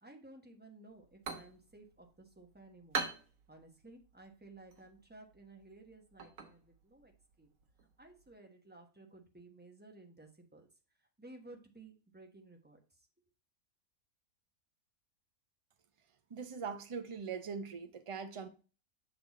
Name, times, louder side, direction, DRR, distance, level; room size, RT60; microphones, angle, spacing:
voice 1, 0.0-3.1 3.5-7.5 8.0-10.7 11.0-13.1, right 2 dB, 10° right, 1.0 m, -56 dB
sound 1, 0.9-8.4, right 4 dB, 75° right, 1.5 m, -45 dB
voice 2, 16.3-18.5, right 6 dB, 35° right, 0.5 m, -41 dB
6.6 x 4.1 x 4.1 m
omnidirectional pair, 1.5 m